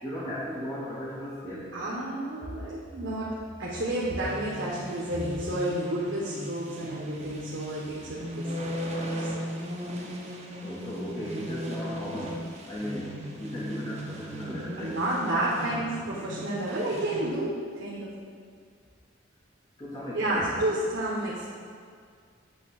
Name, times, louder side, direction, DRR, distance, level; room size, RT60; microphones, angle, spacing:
voice 1, 0.0-1.7 10.6-15.0 19.8-20.7, equal, 20° left, -8 dB, 1.1 m, -36 dB
voice 2, 1.7-3.3 3.6-8.8 9.2-9.3 9.9-10.0 14.8-17.5 17.8-18.1 20.1-21.5, right 1 dB, 65° right, -6 dB, 1.1 m, -30 dB
sound 1, 4.2-17.3, equal, 35° right, 1.0 m, -37 dB
8.3 x 3.3 x 6.4 m, 2.1 s
head